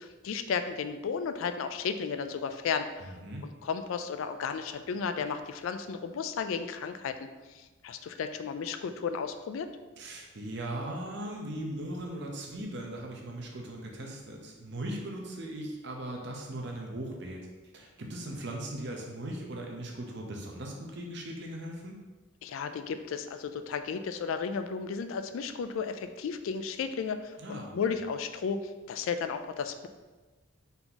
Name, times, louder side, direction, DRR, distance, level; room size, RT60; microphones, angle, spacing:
voice 1, 0.0-3.1 3.6-7.2 7.5-9.7 22.4-28.6 28.9-29.9, left 6 dB, 70° left, 9 dB, 0.3 m, -34 dB
voice 2, 3.0-3.5 10.0-17.4 17.7-22.0 27.4-27.8, right 1 dB, 55° right, 0 dB, 0.7 m, -39 dB
4.1 x 2.9 x 3.9 m, 1.2 s
head